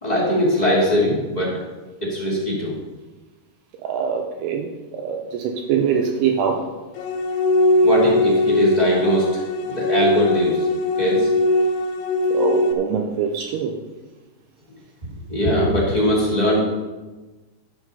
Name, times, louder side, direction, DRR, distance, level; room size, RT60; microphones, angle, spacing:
voice 1, 0.0-1.6 2.0-2.7 7.8-9.3 9.7-10.7 11.0-11.3 15.3-16.6, equal, 25° left, -6 dB, 0.8 m, -20 dB
voice 2, 3.8-6.7 12.3-13.7, right 7 dB, 85° right, 3 dB, 2.3 m, -23 dB
sound 1, 7.0-12.7, left 1 dB, 80° left, 3.1 m, -20 dB
12.5 x 6.2 x 5.5 m, 1.2 s
omnidirectional pair, 5.5 m